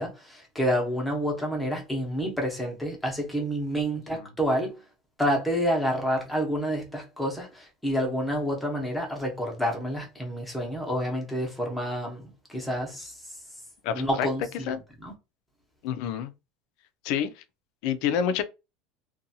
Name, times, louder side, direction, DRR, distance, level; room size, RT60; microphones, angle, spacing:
voice 1, 0.0-4.8 5.2-13.4 13.9-15.1, equal, 5° left, 0.8 m, -29 dB
voice 2, 13.8-14.3 14.7-14.8 15.8-16.3 17.0-17.3 17.8-18.4, left 8 dB, 60° left, 0.4 m, -27 dB
2.6 x 2.3 x 2.7 m
cardioid pair, 155°, 0 cm